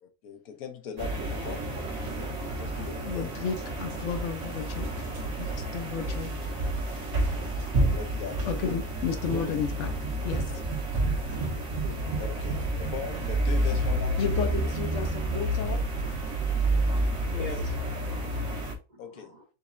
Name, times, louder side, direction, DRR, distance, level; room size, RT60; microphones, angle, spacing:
voice 1, 0.0-3.3 7.7-8.7 12.2-14.7 19.0-19.3, left 7 dB, 85° left, 1.3 m, -40 dB
sound 1, 1.0-18.7, right 1 dB, 70° right, 1.4 m, -29 dB
voice 2, 3.0-5.1 5.4-6.3 8.4-9.9 10.2-10.4 14.2-15.8 17.3-17.5, left 7 dB, 65° left, 0.8 m, -33 dB
voice 3, 9.3-9.8 10.2-10.4 11.3-12.7 13.1-13.2 15.2-15.5 16.0-16.1 16.6-16.7 17.1-19.4, right 2 dB, 45° right, 0.6 m, -45 dB
4.1 x 4.0 x 2.5 m
omnidirectional pair, 1.5 m